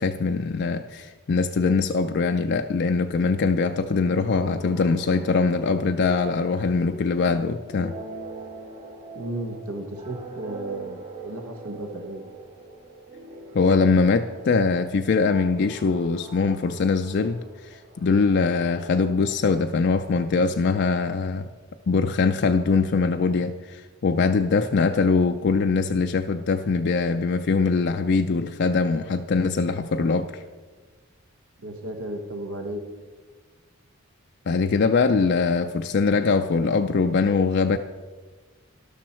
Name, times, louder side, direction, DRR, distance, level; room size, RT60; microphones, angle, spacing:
voice 1, 0.0-7.9 13.5-17.4 17.7-21.5 21.9-30.4 34.5-37.8, left 4 dB, 50° left, 6 dB, 0.4 m, -22 dB
sound 1, 3.7-20.1, right 3 dB, 35° right, 1.5 m, -43 dB
voice 2, 9.1-12.2 31.6-32.8, right 1 dB, 85° right, 4 dB, 1.2 m, -34 dB
12.5 x 12.0 x 4.4 m, 1.4 s
head